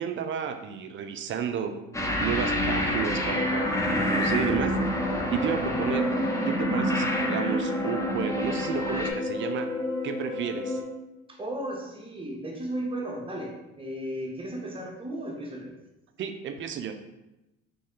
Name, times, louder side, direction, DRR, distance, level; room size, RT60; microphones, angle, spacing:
voice 1, 0.0-1.7 2.2-4.7 5.3-6.1 6.5-9.7 10.0-10.8 16.2-16.9, right 8 dB, 40° right, 7 dB, 0.4 m, -32 dB
sound 1, 1.9-9.1, equal, 10° left, 0.6 m, -28 dB
sound 2, 3.1-10.8, left 1 dB, 40° left, 1.0 m, -32 dB
voice 2, 11.3-15.7, right 1 dB, 15° right, -1 dB, 0.9 m, -35 dB
3.3 x 2.6 x 3.6 m, 0.95 s
supercardioid pair, 80°, 31 cm